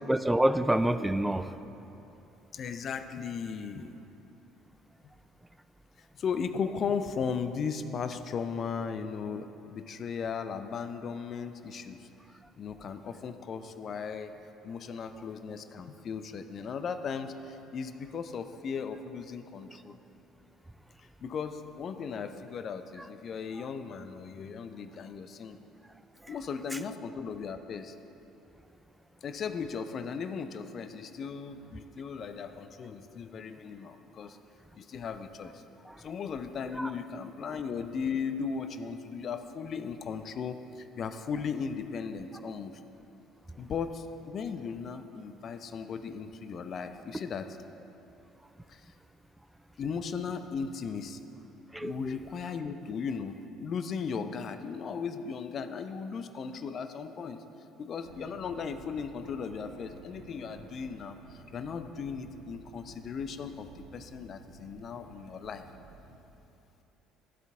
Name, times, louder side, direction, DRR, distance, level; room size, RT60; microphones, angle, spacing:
voice 1, 0.1-1.5 26.2-26.3 26.7-26.8 35.9-36.0 36.8-36.9 51.7-52.1, right 1 dB, 10° right, 12 dB, 0.4 m, -27 dB
voice 2, 2.5-4.0 6.1-12.1 12.6-14.4 14.6-20.0 21.2-25.6 26.3-27.9 29.2-34.4 34.8-35.6 36.0-42.8 43.6-47.5 48.7-48.8 49.8-51.2 51.8-57.4 57.8-65.6, left 6 dB, 45° left, 9 dB, 0.5 m, -37 dB
sound 1, 58.0-66.2, right 3 dB, 75° right, 0.8 m, -52 dB
12.0 x 7.9 x 3.6 m, 2.9 s
figure-of-eight pair, 55°, 0 cm